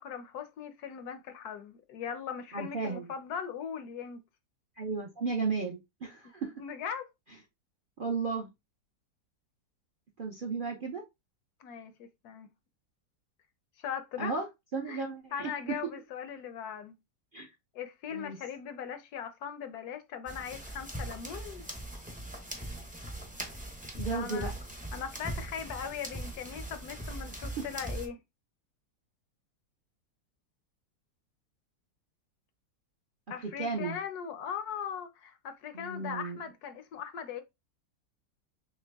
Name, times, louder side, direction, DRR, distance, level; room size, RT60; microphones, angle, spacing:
voice 1, 0.0-4.2 6.6-7.1 11.6-12.5 13.8-14.3 14.9-15.0 15.3-17.0 17.7-21.7 24.1-24.5 24.9-28.2 33.3-37.4, left 7 dB, 70° left, 1.1 m, -39 dB
voice 2, 2.5-3.1 4.8-6.5 8.0-8.5 10.2-11.0 14.2-14.5 14.7-15.8 17.3-17.5 18.1-18.4 24.0-24.5 27.6-27.7 33.4-34.0 35.7-36.4, right 4 dB, 50° right, 0.6 m, -34 dB
sound 1, 20.3-28.1, right 1 dB, 10° right, 0.5 m, -40 dB
5.8 x 2.1 x 3.4 m
omnidirectional pair, 1.8 m